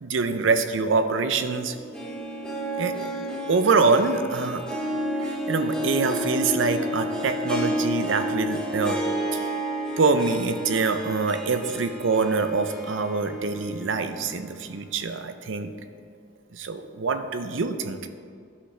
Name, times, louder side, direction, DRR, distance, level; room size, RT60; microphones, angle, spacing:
voice 1, 0.0-1.7 2.8-2.9 3.5-4.6 5.2-9.0 9.3-9.5 10.0-15.7 16.5-18.1, right 4 dB, 70° right, 9 dB, 0.6 m, -25 dB
Harp, 1.7-13.8 14.2-14.3 15.1-15.2, equal, 5° left, 0.9 m, -31 dB
12.5 x 5.7 x 3.3 m, 2.3 s
head